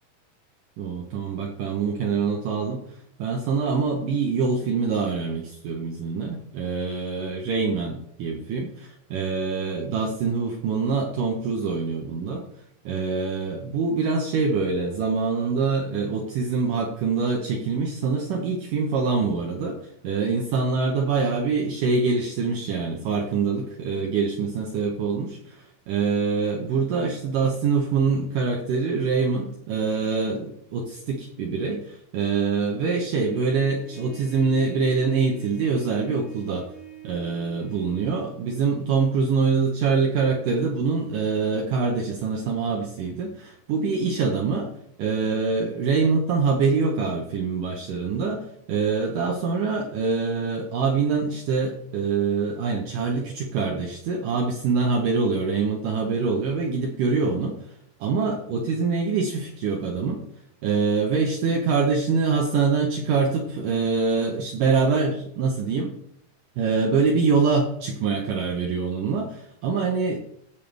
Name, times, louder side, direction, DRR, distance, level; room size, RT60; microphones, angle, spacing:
voice 1, 0.8-2.8 3.2-12.4 12.9-19.8 20.0-36.7 37.0-44.7 45.0-57.6 58.0-60.2 60.6-65.9 66.6-70.2, right 4 dB, 70° right, 0 dB, 2.2 m, -24 dB
Trumpet, 33.1-38.1, right 7 dB, 5° left, 0.9 m, -44 dB
15.5 x 5.7 x 3.4 m, 0.71 s
omnidirectional pair, 4.6 m